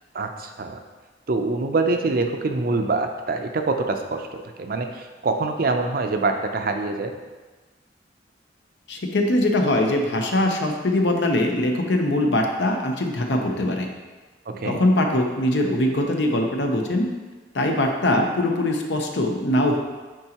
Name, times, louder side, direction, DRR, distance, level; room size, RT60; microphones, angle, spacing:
voice 1, 0.1-0.8 1.3-7.1 14.5-14.8, right 3 dB, 55° right, 5 dB, 0.5 m, -25 dB
voice 2, 8.9-13.9 14.6-17.1 17.5-19.8, left 1 dB, 70° left, 2 dB, 0.8 m, -22 dB
9.8 x 3.9 x 2.9 m, 1.3 s
head